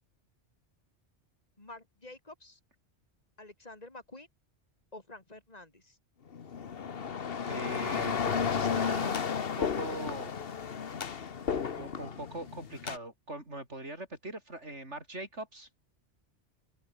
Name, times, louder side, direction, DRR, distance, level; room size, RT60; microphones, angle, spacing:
voice 1, 1.6-2.6 3.4-4.3 4.9-6.0, left 2 dB, 35° left, 2.9 m, -49 dB
sound 1, 6.3-13.0, left 6 dB, 55° left, 1.3 m, -33 dB
voice 2, 7.4-10.3 11.5-15.7, right 2 dB, 75° right, 6.6 m, -41 dB
open air
omnidirectional pair, 1.2 m